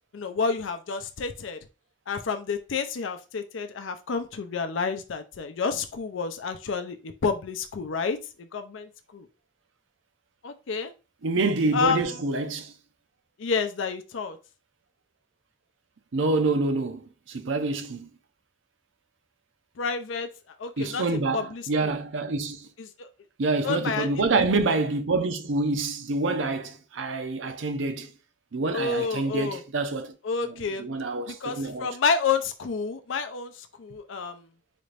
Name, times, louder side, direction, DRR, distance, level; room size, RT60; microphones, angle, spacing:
voice 1, 0.1-1.6 2.1-9.3 10.4-10.9 11.7-12.2 13.4-14.4 19.8-20.3 20.6-21.0 21.3-21.9 22.8-23.1 23.6-24.3 28.7-29.6 30.2-30.9 31.3-34.5, left 5 dB, 90° left, 0.5 m, -29 dB
voice 2, 11.2-12.7 16.1-18.1 20.8-22.7 23.4-28.1 28.5-30.1 30.5-31.9, right 3 dB, 80° right, 0.6 m, -27 dB
4.2 x 2.5 x 3.2 m
head